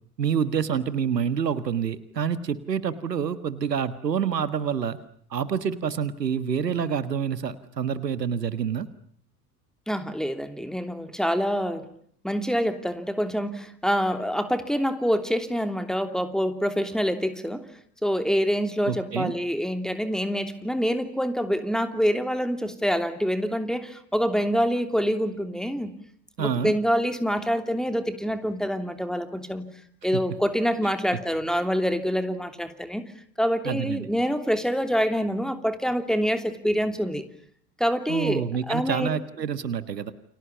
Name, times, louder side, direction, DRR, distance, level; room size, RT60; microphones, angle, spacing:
voice 1, 0.2-5.0 5.3-8.9 18.9-19.3 26.4-26.7 31.1-31.2 33.6-34.1 38.1-40.1, right 7 dB, 80° right, 14 dB, 1.7 m, -27 dB
voice 2, 9.9-11.9 12.2-17.6 18.0-25.9 26.4-29.7 30.0-33.0 33.4-37.2 37.8-39.1, equal, ahead, 9 dB, 3.0 m, -26 dB
29.5 x 25.0 x 7.1 m, 0.64 s
figure-of-eight pair, 70°, 48 cm